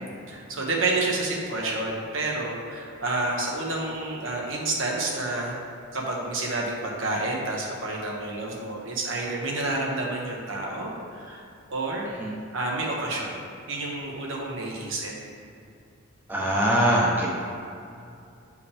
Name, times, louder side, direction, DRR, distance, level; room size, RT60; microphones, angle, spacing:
voice 1, 0.3-5.6 5.9-12.1 12.5-15.1, right 2 dB, 65° right, -2 dB, 1.1 m, -29 dB
voice 2, 16.3-17.3, right 1 dB, 10° right, -5 dB, 0.9 m, -22 dB
8.3 x 4.9 x 3.5 m, 2.5 s
head